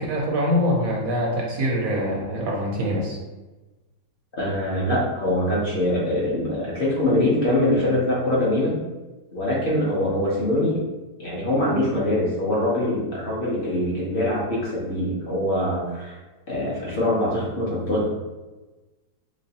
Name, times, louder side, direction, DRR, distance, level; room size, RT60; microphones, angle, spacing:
voice 1, 0.0-3.2, equal, 70° right, -2 dB, 0.8 m, -24 dB
voice 2, 4.4-8.8 9.3-10.8 11.2-16.2 16.5-18.1, left 1 dB, 50° left, -5 dB, 0.7 m, -23 dB
3.1 x 3.1 x 2.8 m, 1.2 s
omnidirectional pair, 1.9 m